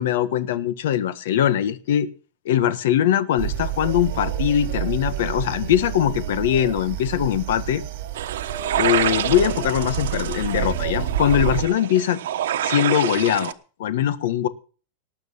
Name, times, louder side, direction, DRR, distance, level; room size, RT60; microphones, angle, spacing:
voice 1, 0.0-2.1 2.4-7.8 8.7-12.2 12.6-13.5 13.8-14.5, left 10 dB, 60° left, 13 dB, 1.4 m, -21 dB
sound 1, 3.4-11.6, right 10 dB, 50° right, 3.7 m, -29 dB
sound 2, 8.2-13.5, right 11 dB, 80° right, 1.2 m, -27 dB
19.0 x 6.6 x 7.1 m, 0.38 s
supercardioid pair, 175°, 0 cm